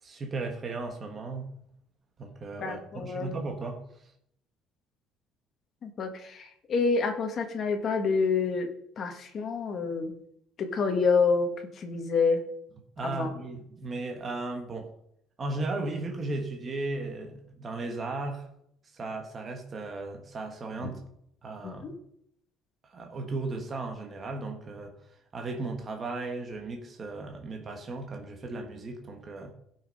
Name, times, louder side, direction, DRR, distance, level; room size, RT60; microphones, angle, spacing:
voice 1, 0.0-1.5 2.2-4.1 13.0-14.9 15.4-18.5 18.9-21.0 21.4-21.9 22.8-25.0 25.3-29.5, right 3 dB, 25° right, 3 dB, 1.3 m, -36 dB
voice 2, 2.6-3.4 5.8-8.7 9.0-10.1 10.6-12.4 13.0-13.3 20.8-20.9 21.6-21.9, left 4 dB, 35° left, 4 dB, 1.5 m, -28 dB
16.0 x 5.9 x 5.3 m, 0.73 s
cardioid pair, 165°, 0 cm